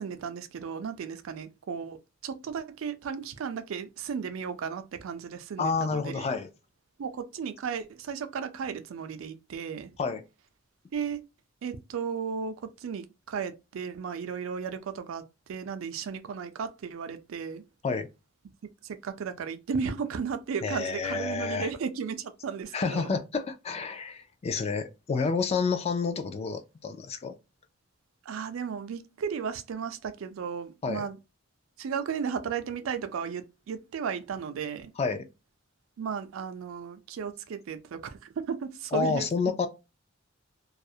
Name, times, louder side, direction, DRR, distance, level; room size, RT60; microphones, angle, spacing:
voice 1, 0.0-6.3 7.0-9.9 10.9-11.2 11.6-15.2 15.5-17.6 18.8-23.2 28.3-31.2 31.8-34.9 36.0-39.3, right 6 dB, 80° right, 0.4 m, -35 dB
voice 2, 5.6-6.5 10.0-10.2 17.8-18.1 20.6-21.7 22.7-27.3 30.8-31.1 35.0-35.3 38.9-39.7, left 4 dB, 30° left, 0.3 m, -29 dB
2.3 x 2.0 x 2.6 m
head